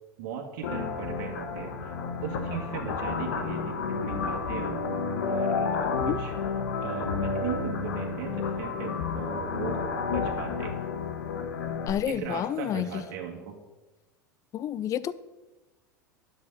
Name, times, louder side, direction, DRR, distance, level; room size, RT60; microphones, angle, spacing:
voice 1, 0.2-1.9 2.2-6.3 6.8-9.8 10.1-10.8 12.1-13.5, right 7 dB, 55° right, 1 dB, 1.8 m, -38 dB
sound 1, 0.6-11.9, left 5 dB, 65° left, 1.4 m, -31 dB
voice 2, 11.9-13.0 14.5-15.1, left 10 dB, 30° left, 17 dB, 0.5 m, -29 dB
11.5 x 6.7 x 5.5 m, 1.1 s
figure-of-eight pair, 80°, 10 cm